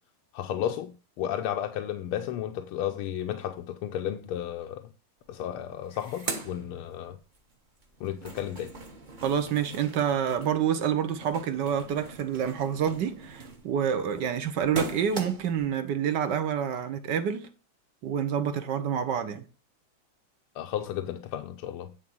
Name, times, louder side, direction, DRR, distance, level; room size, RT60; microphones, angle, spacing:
voice 1, 0.3-4.9 5.3-7.2 8.0-8.7 20.5-21.9, left 10 dB, 85° left, 1.5 m, -33 dB
sound 1, 5.3-5.4 5.6-7.4 7.8-15.7, right 3 dB, 30° right, 1.1 m, -41 dB
voice 2, 9.2-17.5 18.0-19.4, right 8 dB, 60° right, 1.4 m, -28 dB
9.8 x 4.1 x 6.1 m
omnidirectional pair, 2.4 m